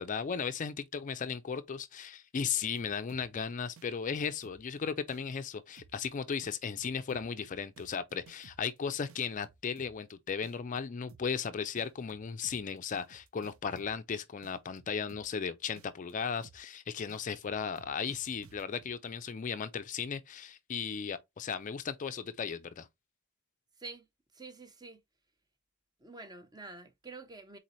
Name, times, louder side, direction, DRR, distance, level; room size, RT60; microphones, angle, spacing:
voice 1, 0.0-22.9, left 6 dB, 35° left, 0.4 m, -36 dB
sound 1, 2.5-3.4 3.8-4.8 5.1-5.4 5.8-6.1 6.4-8.8 9.1-10.1 10.4-10.8 11.1-11.4 11.8-14.1 14.4-15.4 15.8-16.1 16.4-16.8 17.1-18.9, right 5 dB, 75° right, 0.6 m, -58 dB
voice 2, 24.3-25.0 26.0-27.6, right 3 dB, 20° right, 0.7 m, -47 dB
4.0 x 4.0 x 3.0 m
head